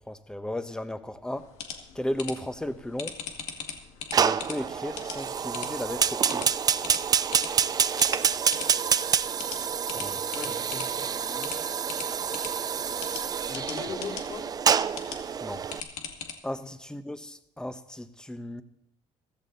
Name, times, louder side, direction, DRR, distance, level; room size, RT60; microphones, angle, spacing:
voice 1, 0.1-1.5 1.9-3.2 4.1-6.5 9.9-10.2 10.4-10.6 15.3-15.6 16.4-18.6, left 1 dB, 5° left, 1.1 m, -35 dB
sound 1, 1.4-16.3, left 7 dB, 90° left, 2.1 m, -42 dB
Fire, 4.1-15.8, right 7 dB, 35° right, 0.6 m, -27 dB
voice 2, 9.9-11.5 13.5-14.5 16.6-16.7, left 5 dB, 40° left, 3.9 m, -40 dB
15.0 x 14.5 x 4.0 m
cardioid pair, 110°, 11 cm